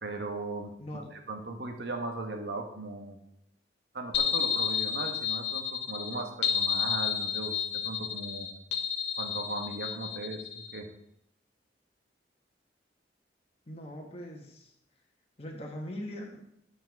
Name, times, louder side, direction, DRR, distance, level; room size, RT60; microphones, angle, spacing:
voice 1, 0.0-1.0 1.3-3.2 3.9-8.5 9.2-10.9, right 2 dB, 65° right, 3 dB, 1.4 m, -38 dB
sound 1, 4.1-10.8, left 7 dB, 70° left, 1.0 m, -31 dB
voice 2, 13.7-14.7 15.4-16.4, equal, 35° left, 1 dB, 1.3 m, -41 dB
10.0 x 5.5 x 4.7 m, 0.75 s
head